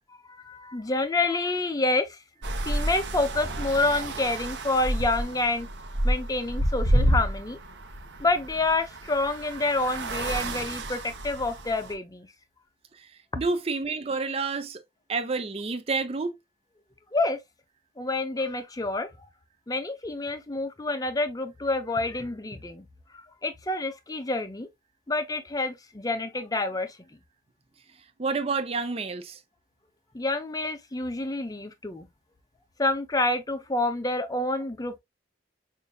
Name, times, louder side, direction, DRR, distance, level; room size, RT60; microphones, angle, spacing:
voice 1, 0.3-2.2 2.7-5.7 6.0-7.6 8.2-12.3 17.1-17.4 18.0-19.1 19.7-22.9 23.1-24.7 25.1-27.0 30.1-32.1 32.8-35.0, left 2 dB, 20° left, 0.6 m, -28 dB
sound 1, 2.4-11.9, right 1 dB, 80° right, 0.8 m, -29 dB
voice 2, 13.4-14.8 15.1-16.3 28.2-29.4, right 4 dB, 35° right, 0.5 m, -29 dB
5.3 x 2.6 x 2.2 m
head